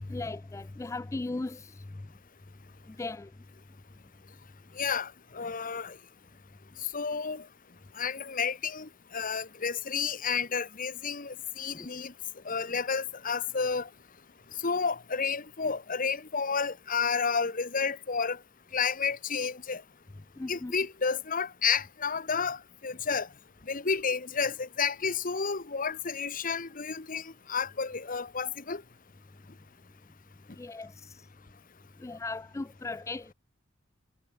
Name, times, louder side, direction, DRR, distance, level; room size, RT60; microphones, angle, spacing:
voice 1, 0.1-1.8 3.0-3.3 11.7-11.9 20.4-20.7 30.6-31.1 32.0-33.3, left 3 dB, 15° left, 0.3 m, -37 dB
voice 2, 4.8-6.0 6.9-7.4 8.0-12.1 12.4-13.9 14.6-18.4 18.7-19.8 20.5-23.3 23.7-28.8, left 5 dB, 45° left, 1.3 m, -31 dB
head